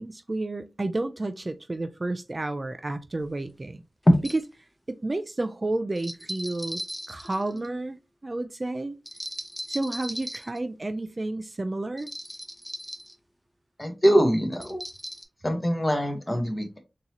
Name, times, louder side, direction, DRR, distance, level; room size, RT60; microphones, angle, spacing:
voice 1, 0.0-3.8 4.9-6.8 7.1-8.0 8.2-8.9 9.7-12.1, right 2 dB, 35° right, 0.3 m, -31 dB
sound 1, 3.2-3.3 4.1-4.5 6.0-7.8 9.1-10.6 12.0-13.1 14.5-15.2, equal, ahead, 0.7 m, -38 dB
voice 2, 13.8-14.8 15.4-16.8, equal, 25° left, 1.1 m, -24 dB
3.8 x 2.7 x 2.9 m
wide cardioid pair, 70°, 0 cm